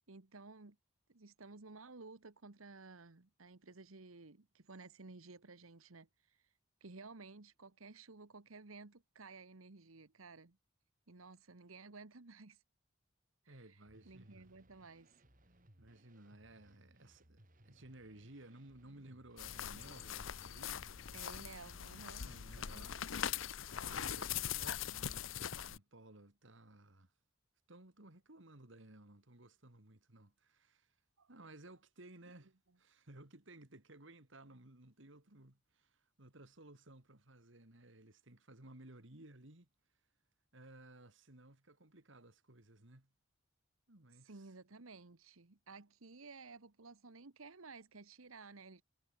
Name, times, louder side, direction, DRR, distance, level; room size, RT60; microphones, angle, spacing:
voice 1, 0.1-0.8 1.1-6.5 6.8-10.6 11.1-12.6 13.4-15.2 21.1-23.2 31.2-31.3 32.3-32.4 44.1-48.8, right 3 dB, 90° right, 1.4 m, -55 dB
voice 2, 13.5-14.5 15.8-20.9 22.2-23.0 23.7-27.1 27.7-30.9 31.3-39.7 40.5-43.1 43.9-44.5, right 1 dB, 65° right, 2.5 m, -58 dB
sound 1, 13.9-22.4, right 1 dB, 40° right, 3.7 m, -66 dB
sound 2, 19.4-25.8, left 9 dB, 70° left, 0.7 m, -42 dB
head